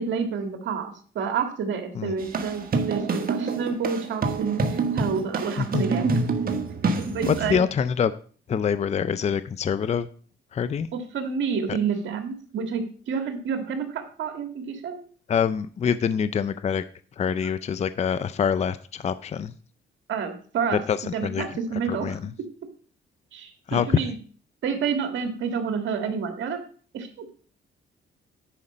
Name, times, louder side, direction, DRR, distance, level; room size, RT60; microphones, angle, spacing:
voice 1, 0.0-6.2 6.8-7.6 11.1-15.0 17.4-17.5 20.1-20.8 21.1-22.2 23.3-24.2 24.6-26.6 26.9-27.3, right 6 dB, 70° right, 6 dB, 1.8 m, -29 dB
sound 1, 2.2-7.6, right 4 dB, 50° right, 1.3 m, -27 dB
voice 2, 7.3-8.1 8.5-10.1 10.5-10.9 11.7-11.8 15.3-16.8 17.2-19.5 20.9-21.5 21.9-22.3 23.7-24.0, left 7 dB, 35° left, 14 dB, 0.5 m, -25 dB
10.0 x 4.9 x 5.4 m, 0.43 s
cardioid pair, 90°, 20 cm